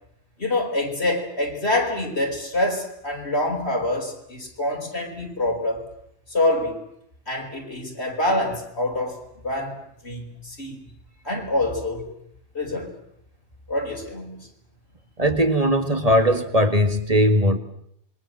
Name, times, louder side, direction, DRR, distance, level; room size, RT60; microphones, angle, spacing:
voice 1, 0.4-5.8 6.3-6.8 7.3-10.8 11.2-12.1 12.5-13.0 13.7-14.5, left 1 dB, 70° left, 1 dB, 5.1 m, -26 dB
voice 2, 15.2-17.6, equal, 35° right, 7 dB, 2.3 m, -19 dB
27.0 x 23.0 x 7.7 m, 0.72 s
omnidirectional pair, 1.1 m